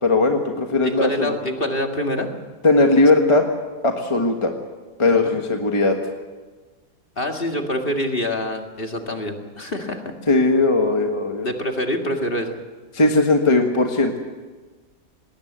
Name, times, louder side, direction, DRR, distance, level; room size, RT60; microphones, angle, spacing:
voice 1, 0.0-1.4 2.6-3.5 3.8-4.5 5.0-6.0 10.3-11.5 12.9-14.2, left 2 dB, 20° left, 3 dB, 1.5 m, -18 dB
voice 2, 0.8-2.3 5.1-5.3 7.2-10.1 11.4-12.6, left 1 dB, 40° left, 4 dB, 2.2 m, -26 dB
19.5 x 19.0 x 8.1 m, 1.3 s
omnidirectional pair, 1.5 m